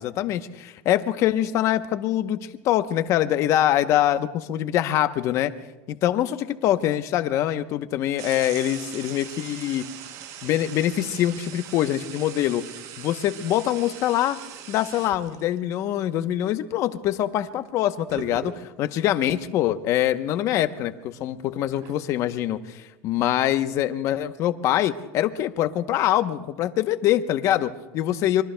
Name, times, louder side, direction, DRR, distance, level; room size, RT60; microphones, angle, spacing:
voice 1, 0.0-2.4 2.6-5.5 5.9-9.8 10.4-12.6 13.0-14.4 14.7-28.4, left 12 dB, 40° left, 10 dB, 0.9 m, -24 dB
sound 1, 8.2-15.6 17.6-17.7 18.1-19.0 19.6-19.7 20.1-22.1, right 9 dB, 40° right, 0.9 m, -41 dB
25.5 x 23.0 x 2.3 m, 1.1 s
supercardioid pair, 155°, 8 cm